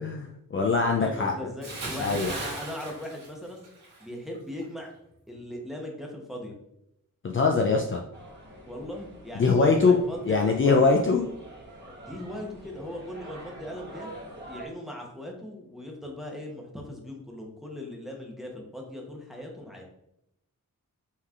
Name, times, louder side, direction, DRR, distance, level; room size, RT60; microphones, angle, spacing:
voice 1, 0.0-1.3 2.0-2.3 7.2-8.0 9.4-10.0 10.3-11.2, left 4 dB, 40° left, 1 dB, 0.4 m, -22 dB
voice 2, 1.0-3.7 4.0-4.9 5.3-6.5 8.6-11.1 12.0-14.1 14.5-19.8, left 1 dB, ahead, 0 dB, 0.9 m, -39 dB
Bathtub (filling or washing) / Splash splatter, 1.6-4.0 4.3-4.6, right 2 dB, 65° right, 1.6 m, -37 dB
sound 1, 8.1-14.7, right 1 dB, 30° right, 1.4 m, -46 dB
5.5 x 3.2 x 2.4 m, 0.80 s
wide cardioid pair, 115°, 34 cm